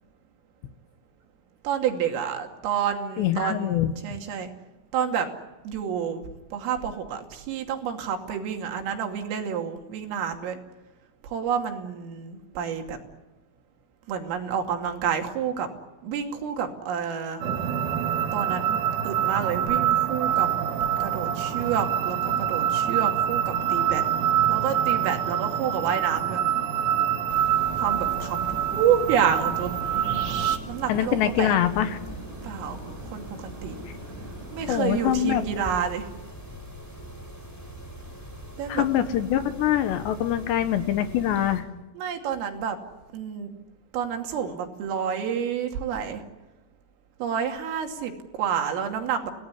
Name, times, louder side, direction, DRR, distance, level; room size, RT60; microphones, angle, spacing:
voice 1, 1.6-4.5 4.9-5.3 5.6-6.2 6.5-10.6 11.2-13.0 14.1-15.7 16.0-17.4 18.3-20.5 21.0-24.0 24.5-26.4 27.8-30.3 30.7-31.6 32.4-33.8 34.5-36.1 38.6-39.1 42.0-42.8 43.1-43.5 43.9-46.2 47.2-49.3, right 8 dB, 85° right, 4 dB, 5.2 m, -29 dB
voice 2, 3.2-3.9 30.9-32.0 34.7-35.4 38.7-41.7, left 11 dB, 70° left, 10 dB, 3.0 m, -24 dB
sound 1, 17.4-30.6, right 10 dB, 55° right, 2.6 m, -25 dB
sound 2, 20.3-34.8, right 1 dB, 40° right, 6.4 m, -43 dB
Mechanisms, 27.3-41.6, equal, 5° left, 5.4 m, -42 dB
29.0 x 18.0 x 9.9 m, 1.1 s
omnidirectional pair, 5.7 m